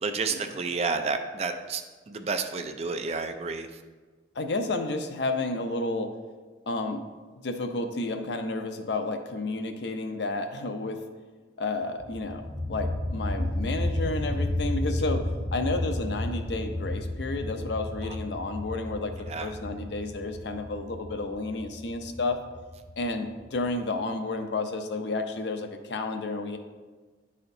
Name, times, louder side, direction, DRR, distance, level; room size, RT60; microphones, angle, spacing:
voice 1, 0.0-3.8 18.0-18.2 19.3-19.5, right 4 dB, 35° right, 7 dB, 0.4 m, -31 dB
voice 2, 4.4-6.1 6.7-7.0 7.4-11.0 11.6-22.4 23.0-26.6, left 2 dB, 70° left, 6 dB, 0.6 m, -31 dB
sound 1, 12.0-23.6, left 1 dB, 55° right, 1.4 m, -32 dB
10.5 x 4.2 x 2.7 m, 1.3 s
head